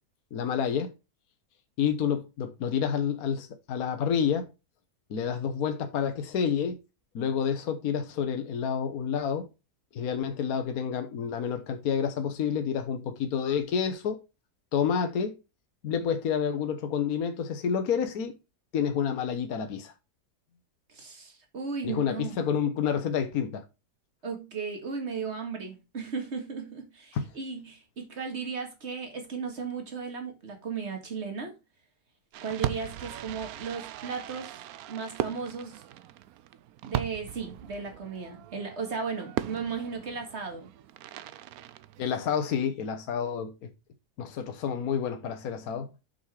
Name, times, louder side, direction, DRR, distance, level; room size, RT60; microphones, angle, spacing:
voice 1, 0.3-0.9 1.8-4.4 5.1-6.8 7.1-9.5 9.9-14.2 14.7-15.4 15.8-18.3 18.7-19.9 21.8-23.6 27.1-27.2 42.0-43.7 44.2-45.9, left 7 dB, 65° left, 1.4 m, -29 dB
voice 2, 20.9-22.4 24.2-31.5 32.4-35.8 36.8-40.7, right 5 dB, 45° right, 2.1 m, -36 dB
Fireworks, 32.3-42.5, right 12 dB, 75° right, 1.0 m, -38 dB
6.2 x 5.7 x 4.8 m
omnidirectional pair, 1.7 m